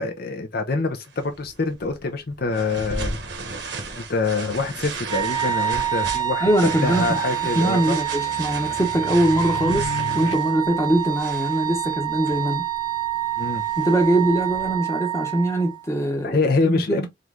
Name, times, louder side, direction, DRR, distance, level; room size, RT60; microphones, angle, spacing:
voice 1, 0.0-3.2 4.0-8.0 13.4-13.6 16.2-17.1, left 3 dB, 50° left, 0.6 m, -25 dB
sound 1, 1.1-14.7, right 3 dB, 60° right, 1.1 m, -36 dB
Wind instrument woodwind instrument, 5.0-15.8, right 12 dB, 20° right, 0.7 m, -27 dB
voice 2, 6.4-7.2 7.6-9.9 10.1-12.6 13.8-17.1, right 1 dB, 15° left, 1.0 m, -22 dB
sound 2, 6.7-10.3, left 4 dB, 80° left, 1.2 m, -36 dB
3.8 x 3.1 x 3.5 m
head